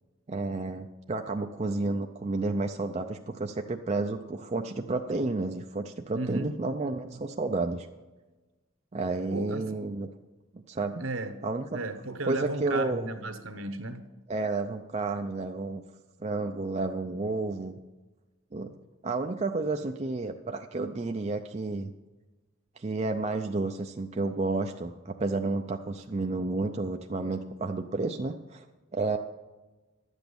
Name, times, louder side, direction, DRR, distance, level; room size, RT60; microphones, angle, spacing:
voice 1, 0.3-7.9 8.9-10.1 10.5-11.0 11.4-11.7 12.3-13.1 14.3-15.8 16.2-17.8 18.5-18.7 19.0-21.9 22.8-28.7 28.9-29.2, right 3 dB, 30° right, 0.4 m, -31 dB
voice 2, 6.1-6.6 9.3-9.8 11.0-11.4 11.7-14.0, right 2 dB, 65° right, 1.1 m, -34 dB
12.0 x 8.1 x 6.9 m
head